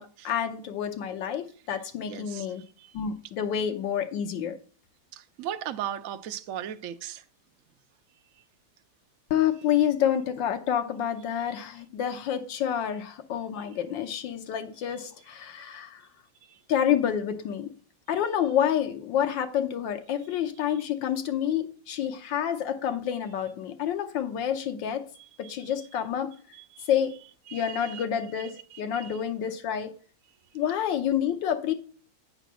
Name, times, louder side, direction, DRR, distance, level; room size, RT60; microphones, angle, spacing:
voice 1, 0.0-2.6 2.9-4.6 9.3-16.0 16.7-17.7 18.1-25.1 25.4-26.3 26.9-27.2 27.5-29.9 30.5-31.7, left 9 dB, 80° left, 1.5 m, -28 dB
voice 2, 2.1-3.0 5.1-7.2 11.5-11.6 14.9-15.0 16.4-16.6 25.4-25.7 26.5-26.9 27.5-28.0 28.7-29.2, right 10 dB, 75° right, 0.7 m, -38 dB
9.1 x 4.0 x 6.0 m
omnidirectional pair, 2.0 m